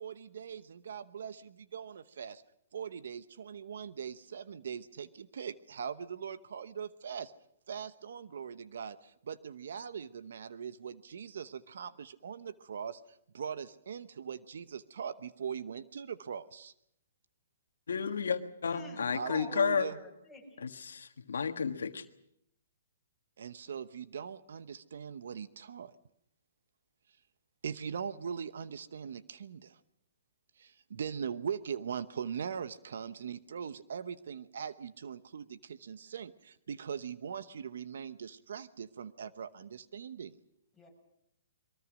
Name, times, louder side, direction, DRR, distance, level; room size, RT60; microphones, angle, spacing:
voice 1, 0.0-2.4 2.7-7.3 7.7-16.7 19.1-20.0 23.4-26.0 27.6-29.8 30.6-40.3, right 7 dB, 70° right, 13 dB, 0.9 m, -41 dB
voice 2, 17.9-19.9 20.6-22.0, left 6 dB, 85° left, 7 dB, 1.5 m, -32 dB
voice 3, 18.6-20.6 40.8-40.9, left 2 dB, ahead, 3 dB, 7.6 m, -48 dB
23.0 x 23.0 x 6.3 m, 0.75 s
hypercardioid pair, 145°, 0 cm